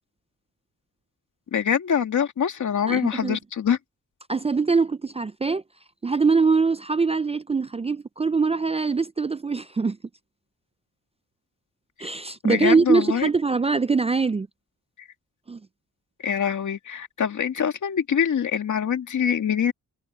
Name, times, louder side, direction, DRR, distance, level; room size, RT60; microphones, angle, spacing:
voice 1, 1.5-3.8 12.5-13.3 16.2-19.7, left 8 dB, 75° left, 2.3 m, -24 dB
voice 2, 2.9-3.4 4.3-5.6 6.0-10.0 12.0-14.5 15.5-15.6, right 4 dB, 20° right, 0.3 m, -23 dB
wide cardioid pair, 130°, 31 cm